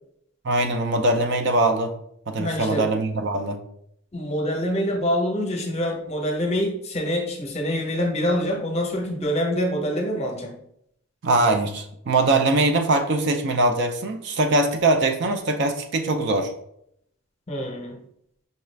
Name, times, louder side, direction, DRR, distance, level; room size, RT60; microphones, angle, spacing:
voice 1, 0.4-1.9 2.3-3.6 11.2-16.5, right 2 dB, 55° right, 6 dB, 0.5 m, -22 dB
voice 2, 2.4-2.9 4.1-10.6 17.5-18.0, equal, 30° left, 2 dB, 0.7 m, -25 dB
5.4 x 2.4 x 3.2 m, 0.72 s
head